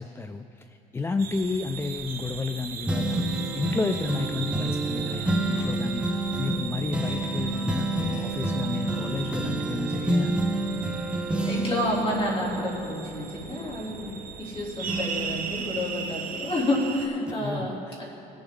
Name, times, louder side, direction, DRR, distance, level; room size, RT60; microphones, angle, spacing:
voice 1, 0.0-10.4 17.3-18.0, left 3 dB, 15° left, 8 dB, 0.3 m, -32 dB
sound 1, 1.2-17.1, right 6 dB, 60° right, 0.9 m, -38 dB
sound 2, 2.9-14.5 14.9-16.8 17.3-17.4, right 2 dB, 5° right, 0.8 m, -29 dB
voice 2, 11.4-14.1 14.4-18.0, left 1 dB, 35° left, -3 dB, 2.8 m, -29 dB
21.0 x 7.1 x 3.7 m, 2.6 s
cardioid pair, 110°, 17 cm